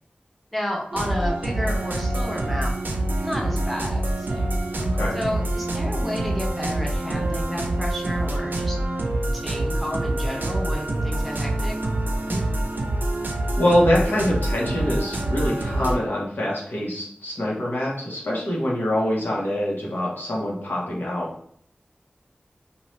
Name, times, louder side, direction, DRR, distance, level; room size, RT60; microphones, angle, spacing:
voice 1, 0.5-2.7 3.2-4.4 5.1-8.8 9.3-11.8, equal, ahead, -2 dB, 0.8 m, -31 dB
sound 1, 0.9-16.0, right 1 dB, 70° right, 0.5 m, -26 dB
voice 2, 4.8-5.1 12.3-12.4 13.6-21.3, equal, 80° left, -4 dB, 0.9 m, -24 dB
2.6 x 2.3 x 3.1 m, 0.65 s
wide cardioid pair, 60°, 3 cm